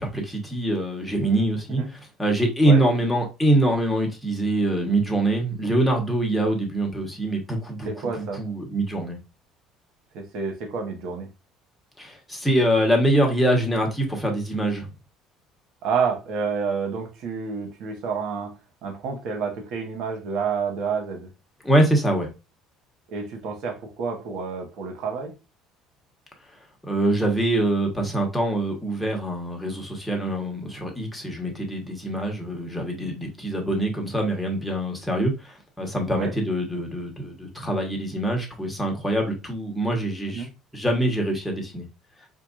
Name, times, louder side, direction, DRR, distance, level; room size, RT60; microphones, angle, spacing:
voice 1, 0.0-8.1 8.3-9.2 12.0-14.9 21.6-22.3 26.9-40.5 40.7-41.9, right 1 dB, 5° left, 1.1 m, -24 dB
voice 2, 7.8-8.4 10.1-11.3 15.8-18.5 18.8-21.3 23.1-25.3 36.1-36.3 40.3-40.5, right 5 dB, 65° right, 1.0 m, -29 dB
4.6 x 2.5 x 2.4 m
cardioid pair, 115°, 0 cm